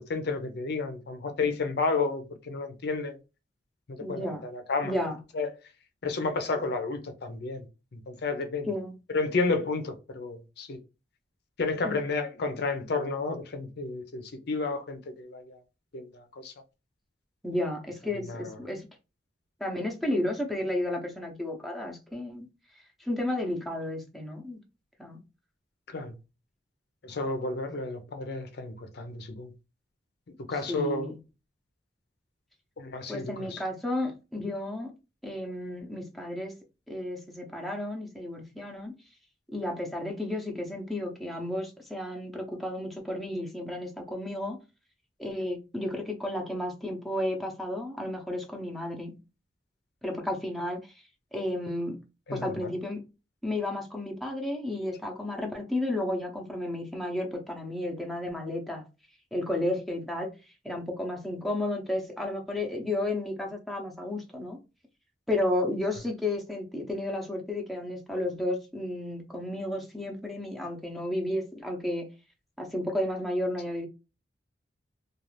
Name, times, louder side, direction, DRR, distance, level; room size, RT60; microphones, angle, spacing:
voice 1, 0.0-3.2 3.9-4.9 5.3-5.6 6.0-7.7 7.9-8.7 9.1-10.8 11.6-15.6 15.9-16.5 18.1-18.6 25.9-26.2 27.0-29.5 30.5-31.1 32.8-33.6 52.3-52.7, left 3 dB, 65° left, 0.6 m, -31 dB
voice 2, 4.0-4.4 4.8-5.2 8.6-9.0 11.8-12.0 17.4-18.9 19.6-22.5 23.0-24.6 25.0-25.2 30.7-31.2 33.1-34.9 35.2-36.6 36.9-38.9 39.5-44.6 45.2-49.2 50.0-50.9 51.3-52.0 52.3-53.0 53.4-58.8 59.3-60.3 60.6-64.6 65.3-72.1 72.6-73.9, left 1 dB, ahead, 0.7 m, -32 dB
2.5 x 2.4 x 3.2 m
head